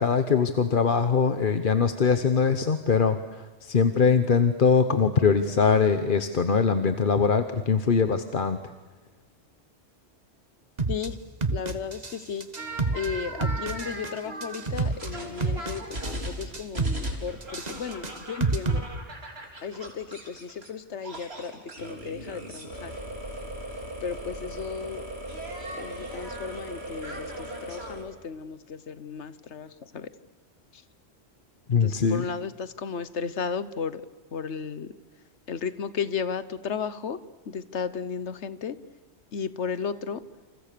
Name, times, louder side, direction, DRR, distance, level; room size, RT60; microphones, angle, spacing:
voice 1, 0.0-8.7 31.7-32.3, left 5 dB, 50° left, 9 dB, 1.2 m, -22 dB
sound 1, 10.8-11.1 11.4-12.2 12.4-13.1 13.4-14.1 14.4-15.1 15.4-16.2 16.4-17.1 17.4-18.8, right 3 dB, 35° right, 1.6 m, -28 dB
voice 2, 11.5-12.5 12.9-18.9 19.6-21.5 21.8-22.9 24.0-25.0 25.8-30.1 31.7-34.0 34.3-34.9 35.5-37.2 37.5-38.8 39.3-40.2, left 6 dB, 80° left, 14 dB, 1.4 m, -34 dB
sound 2, 12.6-20.7 21.0-28.0, right 1 dB, 65° right, 4.5 m, -38 dB
29.0 x 28.0 x 6.8 m, 1.2 s
omnidirectional pair, 1.1 m